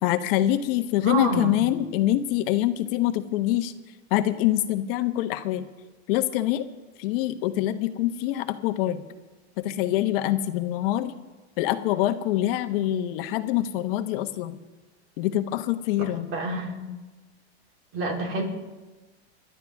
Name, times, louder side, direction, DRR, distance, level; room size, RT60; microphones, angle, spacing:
voice 1, 0.0-3.7 4.1-5.6 6.1-6.6 7.0-9.0 9.6-11.1 11.6-14.6 15.2-16.3, left 13 dB, 55° left, 8 dB, 1.3 m, -25 dB
voice 2, 1.0-1.6 16.3-16.7 17.9-18.4, right 3 dB, 40° right, 0 dB, 3.7 m, -27 dB
28.5 x 11.5 x 3.6 m, 1.2 s
supercardioid pair, 135°, 33 cm